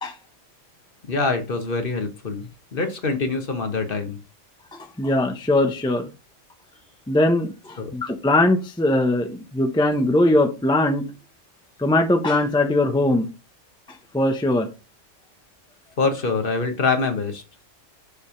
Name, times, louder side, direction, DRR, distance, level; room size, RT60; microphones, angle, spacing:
voice 1, 1.1-4.2 7.8-7.9 16.0-17.4, left 4 dB, 45° left, 6 dB, 1.3 m, -25 dB
voice 2, 5.0-6.1 7.1-11.1 11.8-13.3 14.1-14.7, left 1 dB, 5° left, 4 dB, 0.6 m, -20 dB
6.9 x 3.4 x 5.6 m, 0.30 s
omnidirectional pair, 1.3 m